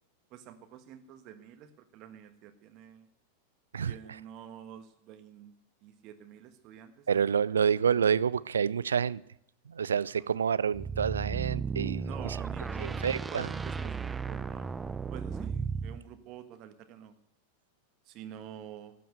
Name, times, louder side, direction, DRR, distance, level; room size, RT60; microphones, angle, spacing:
voice 1, 0.3-3.1 3.9-5.5 5.8-7.1 12.0-14.7 15.1-17.1 18.1-18.9, right 9 dB, 40° right, 1.3 m, -48 dB
voice 2, 3.7-4.2 7.1-9.2 9.7-12.4 12.8-13.5, right 7 dB, 70° right, 0.4 m, -28 dB
sound 1, 10.7-16.0, right 5 dB, 15° right, 0.6 m, -35 dB
12.5 x 9.2 x 8.0 m
figure-of-eight pair, 90°, 0 cm